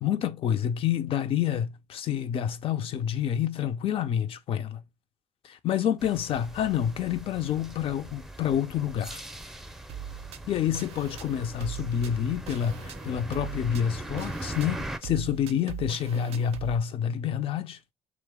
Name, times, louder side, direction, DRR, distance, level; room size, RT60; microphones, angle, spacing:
voice 1, 0.0-4.8 5.4-9.2 10.5-17.8, left 9 dB, 65° left, 0.4 m, -28 dB
sound 1, 6.0-15.0, right 1 dB, 5° right, 0.4 m, -40 dB
sound 2, 9.9-16.8, right 10 dB, 70° right, 0.4 m, -41 dB
3.0 x 2.0 x 3.4 m
cardioid pair, 80°, 10 cm